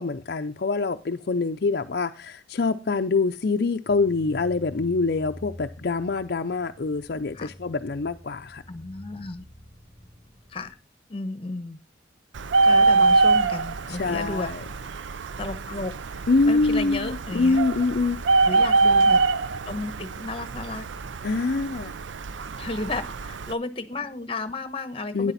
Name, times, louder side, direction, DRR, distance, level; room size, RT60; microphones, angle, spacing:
voice 1, 0.0-8.6 13.9-14.6 16.3-18.2 21.2-21.9 25.1-25.3, left 3 dB, 55° left, 0.5 m, -25 dB
sound 1, 3.8-10.8, equal, 15° right, 6.5 m, -46 dB
voice 2, 8.7-9.4 10.5-10.8 11.1-11.8 12.6-14.5 15.4-15.9 16.4-17.6 18.4-19.2 19.6-20.9 22.6-25.3, left 2 dB, 30° left, 1.0 m, -33 dB
Bird, 12.3-23.5, right 3 dB, 90° right, 0.5 m, -24 dB
12.5 x 10.0 x 4.1 m
head